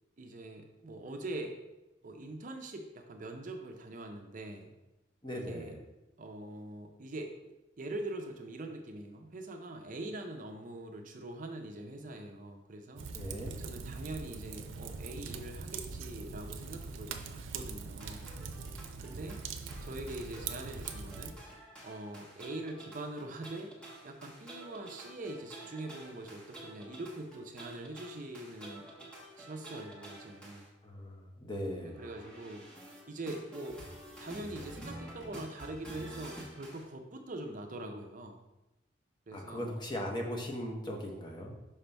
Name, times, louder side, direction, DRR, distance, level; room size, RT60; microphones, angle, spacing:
voice 1, 0.2-1.6 2.0-4.7 5.3-5.7 6.2-13.1 13.6-18.3 19.0-19.5 19.8-21.4 21.8-23.7 24.0-28.9 29.4-30.7 32.0-32.6 33.1-33.8 34.2-38.4 39.3-39.7, right 2 dB, 45° right, 4 dB, 0.5 m, -43 dB
voice 2, 5.2-5.8 13.1-13.5 30.8-32.0 39.3-41.5, equal, 25° left, 0 dB, 0.9 m, -38 dB
Fire, 13.0-21.3, right 5 dB, 85° right, 0.5 m, -42 dB
sound 1, 18.0-30.7 31.7-36.8, right 1 dB, 5° left, 1.1 m, -50 dB
5.5 x 5.1 x 3.4 m, 0.99 s
head